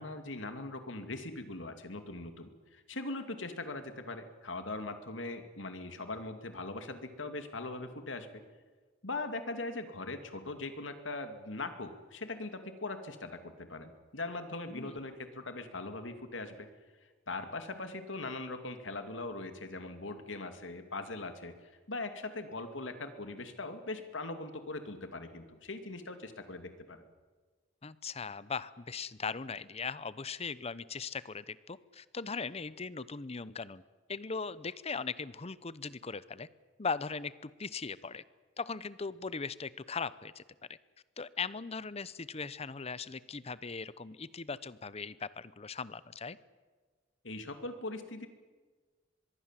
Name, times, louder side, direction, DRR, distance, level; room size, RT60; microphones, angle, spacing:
voice 1, 0.0-8.3 9.0-16.7 17.3-27.0 47.2-48.3, left 2 dB, 80° left, 8 dB, 2.6 m, -41 dB
voice 2, 14.7-15.0 27.8-33.8 34.1-36.5 36.8-38.2 38.6-40.4 41.2-46.4, left 5 dB, 35° left, 17 dB, 0.8 m, -39 dB
24.5 x 21.5 x 7.6 m, 1.4 s
head